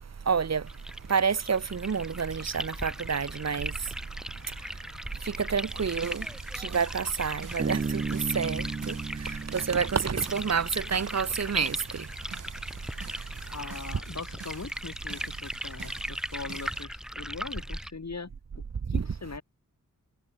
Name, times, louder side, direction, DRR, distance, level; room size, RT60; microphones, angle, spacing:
voice 1, 0.3-0.6 1.1-3.7 5.2-6.3 6.5-8.9 9.2-12.1 18.9-19.1, right 6 dB, 55° right, 1.1 m, -29 dB
sound 1, 0.7-17.9, equal, ahead, 2.1 m, -38 dB
sound 2, 5.7-16.8, right 5 dB, 70° right, 2.4 m, -47 dB
Bass guitar, 7.6-11.0, right 4 dB, 30° right, 0.6 m, -34 dB
voice 2, 13.5-18.6 18.9-19.4, left 4 dB, 55° left, 5.2 m, -41 dB
wide cardioid pair, 110°, 32 cm